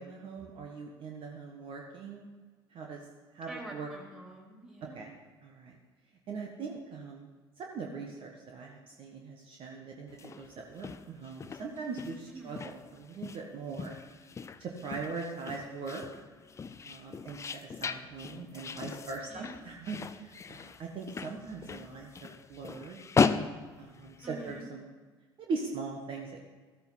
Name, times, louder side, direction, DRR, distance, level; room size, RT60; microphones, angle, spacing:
voice 1, 0.0-2.3 2.7-3.1 3.3-3.9 4.9-5.1 5.4-5.8 6.3-7.3 7.6-13.9 14.6-16.0 16.8-23.0 23.8-24.8 25.4-26.4, right 4 dB, 45° right, 0 dB, 1.6 m, -41 dB
voice 2, 3.5-5.1 12.3-12.5 19.3-19.7 24.2-24.7, right 2 dB, 5° right, -2 dB, 4.0 m, -47 dB
sound 1, 10.1-24.6, left 5 dB, 25° left, 0.6 m, -37 dB
14.0 x 8.8 x 5.7 m, 1.4 s
hypercardioid pair, 70°, 13 cm